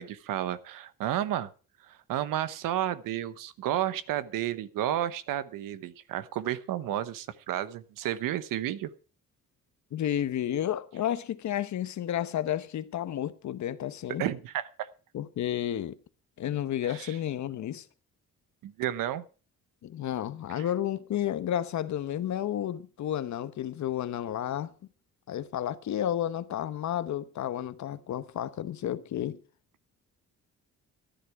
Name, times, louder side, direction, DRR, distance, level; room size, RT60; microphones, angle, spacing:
voice 1, 0.0-1.5 1.9-8.9 14.2-14.9 16.9-17.2 18.6-19.2 20.6-20.7, right 12 dB, 85° right, 1.0 m, -32 dB
voice 2, 9.9-14.2 15.1-16.0 16.4-17.9 19.8-24.7 25.3-29.4, left 11 dB, 60° left, 1.0 m, -31 dB
14.5 x 10.5 x 4.7 m
cardioid pair, 105°, 32 cm